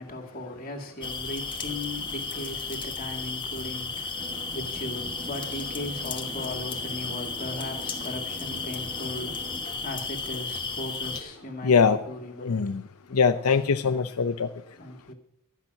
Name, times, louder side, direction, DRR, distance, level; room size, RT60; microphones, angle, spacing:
voice 1, 0.0-13.3 14.7-15.1, left 1 dB, 40° left, 2 dB, 2.3 m, -38 dB
sound 1, 1.0-11.2, left 4 dB, 20° left, 1.2 m, -34 dB
sound 2, 4.1-9.7, right 2 dB, 25° right, 0.9 m, -43 dB
voice 2, 11.6-12.0 12.4-12.8 13.1-14.5, left 5 dB, 90° left, 7 dB, 0.6 m, -22 dB
13.5 x 6.0 x 9.7 m, 0.72 s
head